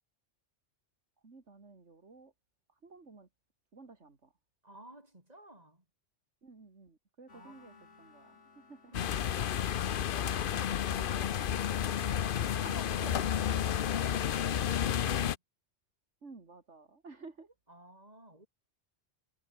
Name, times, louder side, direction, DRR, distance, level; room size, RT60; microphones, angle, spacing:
voice 1, 1.2-2.3 2.7-3.3 3.7-4.3 6.4-8.9 10.5-10.7 12.5-13.2 16.2-17.5, right 3 dB, 80° right, 2.9 m, -53 dB
voice 2, 4.6-5.8 7.3-8.0 8.9-9.4 9.8-15.4 17.7-18.5, right 1 dB, 35° right, 5.8 m, -54 dB
sound 1, 7.3-13.8, left 4 dB, 85° left, 2.6 m, -58 dB
sound 2, 8.9-15.3, left 9 dB, 55° left, 0.8 m, -31 dB
omnidirectional pair, 1.2 m